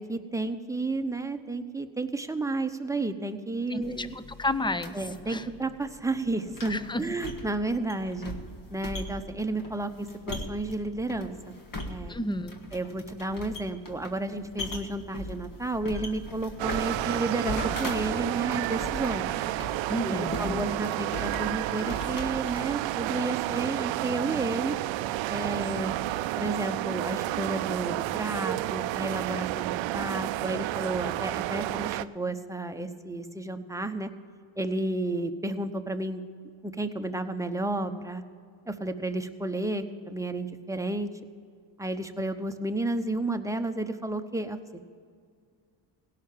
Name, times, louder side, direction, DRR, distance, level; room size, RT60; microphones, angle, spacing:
voice 1, 0.0-4.2 4.9-8.3 8.7-11.6 11.9-12.2 12.7-19.4 20.0-24.8 25.3-25.9 26.4-34.1 34.6-36.2 36.6-38.2 38.7-41.1 41.8-44.6, right 2 dB, 5° right, 7 dB, 0.9 m, -32 dB
voice 2, 3.7-4.9 5.3-5.5 6.7-7.0 12.1-12.5 19.9-20.6, left 1 dB, 10° left, 13 dB, 0.6 m, -31 dB
sound 1, 3.8-22.9, left 1 dB, 45° left, 1.7 m, -40 dB
sound 2, 16.6-32.0, right 16 dB, 75° right, 0.5 m, -31 dB
17.0 x 5.8 x 8.9 m, 2.1 s
supercardioid pair, 65°, 46 cm